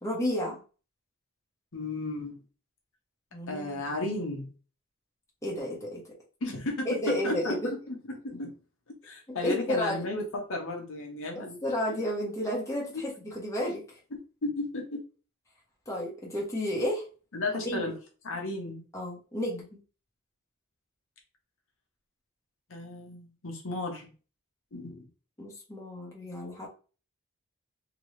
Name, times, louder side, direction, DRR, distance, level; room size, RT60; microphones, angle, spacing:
voice 1, 0.0-0.6 3.3-3.8 5.4-6.1 6.8-7.7 9.3-10.1 11.3-13.8 15.9-17.0 17.6-17.9 18.9-19.7 25.4-26.7, left 1 dB, 15° left, -3 dB, 1.0 m, -32 dB
voice 2, 1.7-2.3 3.5-4.5 6.4-7.9 8.2-8.5 9.0-11.6 12.9-13.0 14.1-15.0 17.3-17.9 18.2-18.8 22.7-24.1 24.7-25.1, left 2 dB, 65° left, 1 dB, 0.9 m, -34 dB
2.9 x 2.7 x 3.1 m, 0.36 s
head